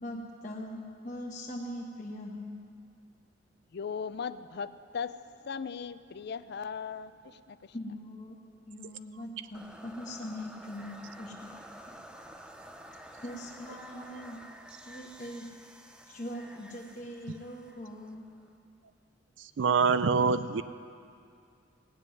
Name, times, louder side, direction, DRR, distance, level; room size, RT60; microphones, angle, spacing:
voice 1, 0.0-2.6 7.7-8.4 8.7-11.5 13.2-14.4 14.8-15.5 16.1-18.3, left 1 dB, 40° left, -3 dB, 1.3 m, -41 dB
voice 2, 3.7-7.7, left 6 dB, 60° left, 14 dB, 0.5 m, -38 dB
sound 1, 9.5-18.6, equal, 5° right, 0.7 m, -50 dB
voice 3, 19.4-20.6, right 5 dB, 70° right, 12 dB, 0.4 m, -25 dB
17.0 x 7.6 x 9.6 m, 2.3 s
head